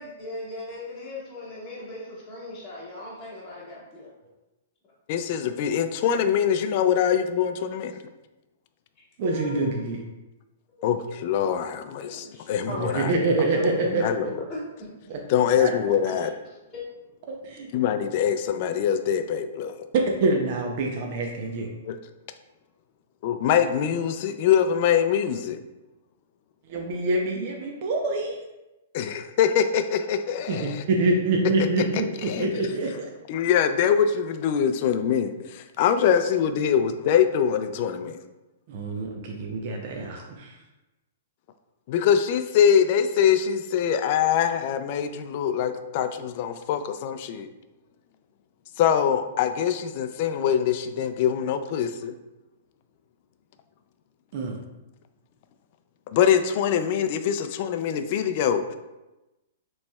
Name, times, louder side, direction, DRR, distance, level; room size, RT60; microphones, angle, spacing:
voice 1, 0.0-4.1 9.0-9.7 11.1-11.2 11.9-13.1 13.5-14.0 14.5-14.9 16.7-16.8, left 2 dB, 15° left, -11 dB, 1.3 m, -38 dB
voice 2, 5.1-7.9 10.8-14.4 15.3-16.3 17.7-19.9 21.8-22.0 23.2-25.6 28.9-30.8 32.2-32.7 33.3-38.2 41.9-47.5 48.8-52.2 56.1-58.7, left 8 dB, 45° left, 8 dB, 0.4 m, -24 dB
voice 3, 9.2-10.0 12.8-14.3 15.1-15.2 15.6-15.7 16.1-16.3 17.3-17.7 19.9-21.7 26.7-28.4 30.5-33.1 38.7-40.6 54.3-54.6, right 2 dB, 45° right, 1 dB, 0.6 m, -26 dB
6.9 x 3.1 x 2.3 m, 1.0 s
hypercardioid pair, 150°, 0 cm